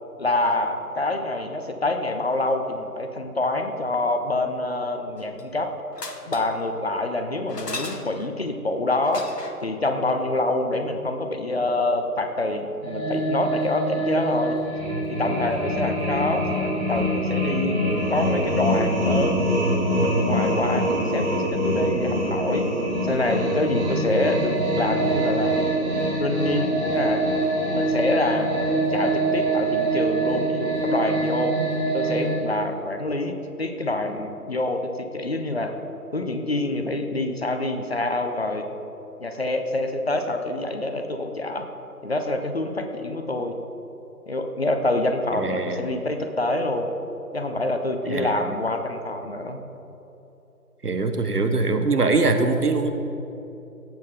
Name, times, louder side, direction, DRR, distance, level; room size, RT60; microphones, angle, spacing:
voice 1, 0.2-5.7 6.3-9.3 9.6-14.6 15.1-17.8 18.1-19.5 20.0-22.7 23.0-25.6 26.2-27.2 27.7-28.5 28.9-31.5 31.9-35.7 36.1-38.7 39.2-41.7 42.0-43.5 44.3-46.9 47.3-49.6, left 2 dB, 40° left, 6 dB, 0.8 m, -26 dB
sound 1, 5.2-5.6 5.9-6.6 7.5-8.4 9.0-9.7 11.8-11.9 12.1-12.2, left 2 dB, 85° left, 1.2 m, -36 dB
sound 2, 12.8-32.3, right 1 dB, 5° right, 1.8 m, -24 dB
voice 2, 45.3-45.8 48.1-48.3 50.8-52.9, right 3 dB, 75° right, 6 dB, 1.3 m, -22 dB
17.5 x 7.8 x 3.8 m, 3.0 s
figure-of-eight pair, 150°, 47 cm